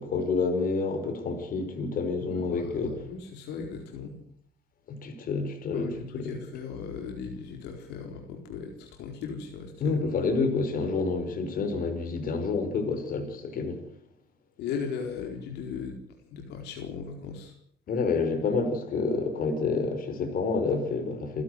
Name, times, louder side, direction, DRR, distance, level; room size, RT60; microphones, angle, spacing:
voice 1, 0.0-2.9 4.9-5.9 6.1-6.4 9.8-13.8 17.9-21.4, left 4 dB, 55° left, 5.4 m, -28 dB
voice 2, 2.3-4.1 5.7-10.0 14.6-16.0 16.3-17.5, left 6 dB, 85° left, 4.4 m, -37 dB
28.5 x 12.5 x 8.2 m
cardioid pair, 110°, 17 cm